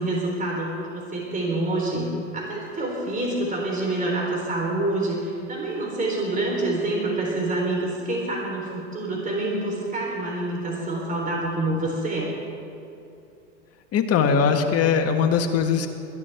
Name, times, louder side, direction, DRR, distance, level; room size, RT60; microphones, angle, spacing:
voice 1, 0.0-12.3, right 2 dB, 20° right, -2 dB, 3.8 m, -27 dB
voice 2, 13.9-15.9, left 6 dB, 40° left, 5 dB, 1.7 m, -21 dB
21.5 x 14.5 x 3.5 m, 2.6 s
hypercardioid pair, 85°, 36 cm